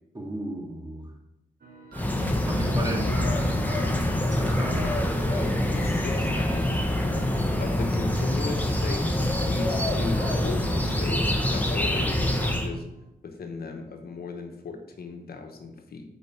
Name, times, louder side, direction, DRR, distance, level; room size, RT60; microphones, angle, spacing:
voice 1, 0.1-1.1 2.5-3.2 4.3-5.0, right 1 dB, 25° right, -1 dB, 2.0 m, -34 dB
sound 1, 1.6-13.1, right 2 dB, 75° right, 1.2 m, -45 dB
sound 2, 1.9-12.7, left 1 dB, 10° left, 1.0 m, -25 dB
voice 2, 5.2-5.5 5.8-6.9 7.6-12.8 13.2-16.0, left 4 dB, 80° left, 4 dB, 1.0 m, -37 dB
5.2 x 4.7 x 5.6 m, 0.87 s
cardioid pair, 60°, 16 cm